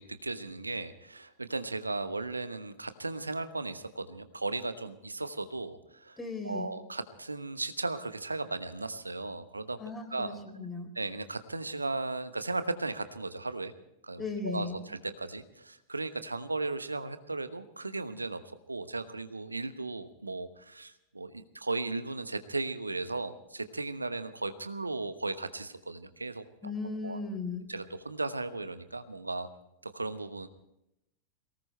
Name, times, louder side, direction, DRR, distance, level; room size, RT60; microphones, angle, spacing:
voice 1, 0.0-6.2 6.4-9.8 10.1-10.4 10.9-13.7 14.0-18.4 18.7-27.2 27.7-29.5 29.8-30.5, right 3 dB, 80° right, 11 dB, 1.1 m, -36 dB
voice 2, 6.2-6.7 9.8-10.9 14.2-14.8 26.6-27.7, left 3 dB, 10° left, 5 dB, 3.8 m, -37 dB
23.5 x 19.0 x 3.3 m, 0.83 s
figure-of-eight pair, 90°, 0 cm